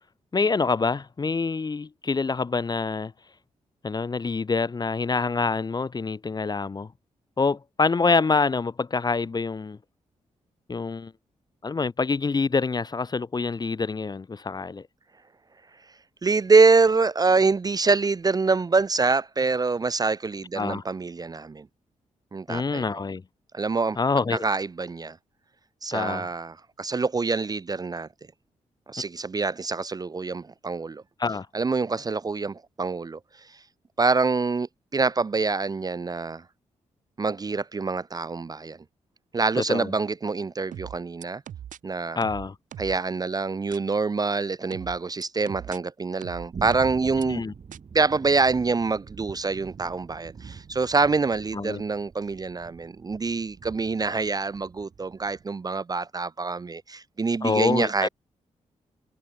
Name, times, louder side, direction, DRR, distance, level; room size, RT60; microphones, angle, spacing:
voice 1, 0.3-3.1 3.8-6.9 7.4-9.8 10.7-11.1 11.6-14.8 20.6-20.8 22.5-23.2 24.0-24.4 25.9-26.3 31.2-31.5 39.6-39.9 42.1-42.5 47.3-47.5 51.5-51.8 57.4-58.1, left 4 dB, 30° left, 0.6 m, -26 dB
voice 2, 16.2-21.7 22.3-22.8 23.5-24.0 24.3-25.2 25.8-28.1 28.9-31.0 31.5-33.2 34.0-36.4 37.2-38.8 39.3-41.4 41.8-42.2 42.8-47.4 47.9-58.1, right 4 dB, 30° right, 0.4 m, -25 dB
sound 1, 40.7-41.8 42.2-43.0 43.7-43.8 44.7-45.8 46.2-47.2 47.7-47.8, right 10 dB, 75° right, 0.7 m, -40 dB
sound 2, 46.5-55.4, right 6 dB, 55° right, 5.1 m, -44 dB
supercardioid pair, 50°, 14 cm